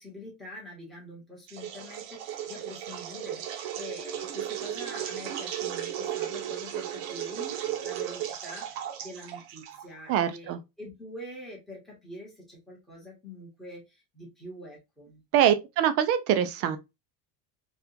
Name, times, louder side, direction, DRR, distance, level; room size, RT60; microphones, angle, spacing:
voice 1, 0.0-15.2, left 1 dB, ahead, 1.2 m, -45 dB
sound 1, 1.5-10.0, right 10 dB, 65° right, 0.8 m, -35 dB
voice 2, 10.1-10.6 15.3-16.8, right 10 dB, 35° right, 0.4 m, -24 dB
3.5 x 2.4 x 2.8 m
cardioid pair, 175°, 41 cm